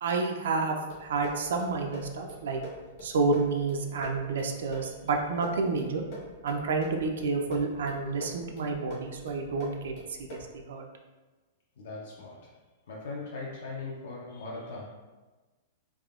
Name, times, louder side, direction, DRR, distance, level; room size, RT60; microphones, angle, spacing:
voice 1, 0.0-2.6 3.0-6.0 6.4-10.8, right 4 dB, 75° right, 3 dB, 0.3 m, -30 dB
sound 1, 0.9-10.6, left 1 dB, 40° left, 0.8 m, -46 dB
voice 2, 11.8-12.6 12.9-14.9, left 3 dB, 65° left, -4 dB, 0.4 m, -40 dB
3.4 x 2.1 x 2.3 m, 1.2 s
supercardioid pair, 175°, 0 cm